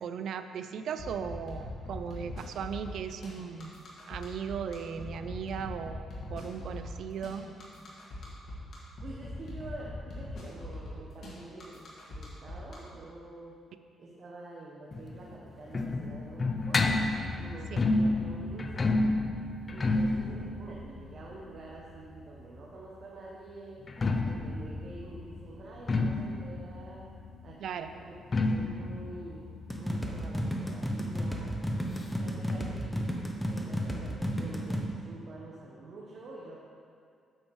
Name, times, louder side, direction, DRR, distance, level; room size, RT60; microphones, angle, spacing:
voice 1, 0.0-7.5 17.7-17.8 27.6-27.9, right 7 dB, 70° right, 9 dB, 0.4 m, -37 dB
sound 1, 1.0-12.8, left 1 dB, 60° left, 1.9 m, -41 dB
voice 2, 8.6-13.6 14.0-16.8 17.4-19.0 19.7-23.8 24.2-27.0 27.4-29.5 29.7-31.5 32.2-33.1 33.5-36.6, right 2 dB, 50° right, -4 dB, 1.0 m, -47 dB
sound 2, 14.9-22.6 23.7-31.1 31.4-31.5 31.7-31.8 32.5-32.6, left 2 dB, 30° left, 0.5 m, -31 dB
sound 3, 29.7-34.9, equal, 5° left, 0.8 m, -33 dB
8.7 x 6.9 x 3.1 m, 2.3 s
cardioid pair, 115°, 0 cm